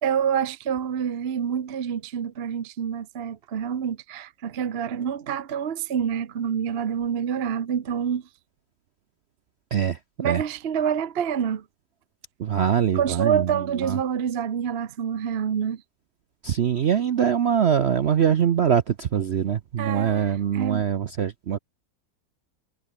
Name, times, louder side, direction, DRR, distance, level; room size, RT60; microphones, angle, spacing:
voice 1, 0.0-8.2 10.2-11.6 12.9-15.8 19.8-20.8, right 8 dB, 45° right, 1.0 m, -27 dB
voice 2, 9.7-10.4 12.4-14.0 16.4-21.6, right 8 dB, 60° right, 0.7 m, -23 dB
omnidirectional pair, 1.9 m